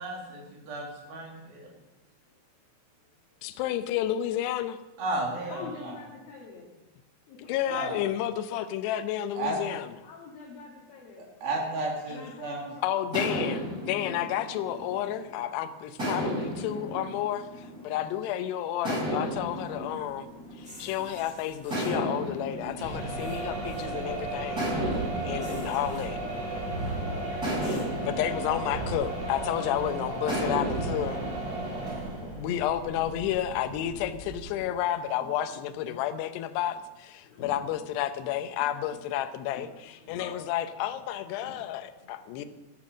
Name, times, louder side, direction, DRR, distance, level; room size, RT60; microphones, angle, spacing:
voice 1, 0.0-1.7 5.0-5.9 7.7-8.0 9.3-9.6 11.2-12.6, right 2 dB, 55° right, 0 dB, 4.2 m, -33 dB
voice 2, 3.4-4.8 7.4-9.9 12.8-20.3 20.6-24.7 25.2-26.2 27.6-31.2 32.4-42.4, left 11 dB, 75° left, 10 dB, 2.6 m, -31 dB
voice 3, 5.5-6.7 7.3-8.0 9.4-9.5 10.0-11.6 12.1-13.0 25.6-25.7 26.9-27.3 31.3-32.3 33.5-33.6 34.7-34.8 35.5-35.6 37.2-37.8 39.5-40.6 41.4-41.6 42.0-42.5, left 4 dB, 60° left, -2 dB, 3.1 m, -47 dB
sound 1, 13.1-15.4 16.0-18.2 18.8-21.1 21.7-24.0 24.6-26.8 27.4-29.7 30.3-32.1, equal, 20° right, 5.9 m, -34 dB
sound 2, 19.2-28.2, equal, ahead, 2.2 m, -52 dB
sound 3, 22.7-34.6, right 2 dB, 35° right, 5.3 m, -34 dB
12.5 x 12.0 x 6.2 m, 1.1 s
omnidirectional pair, 5.4 m